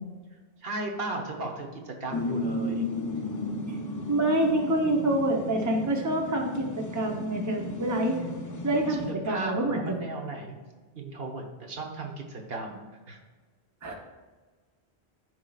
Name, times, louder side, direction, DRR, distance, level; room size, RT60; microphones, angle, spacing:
voice 1, 0.6-2.9 8.8-10.6 10.9-12.8 13.1-13.2, right 2 dB, 65° right, 2 dB, 1.2 m, -36 dB
sound 1, 2.1-9.1, left 1 dB, 25° left, 0.5 m, -34 dB
voice 2, 4.1-8.2 8.6-10.0 13.8-14.0, right 1 dB, 20° right, 1 dB, 0.8 m, -27 dB
12.5 x 4.6 x 2.4 m, 1.4 s
omnidirectional pair, 1.1 m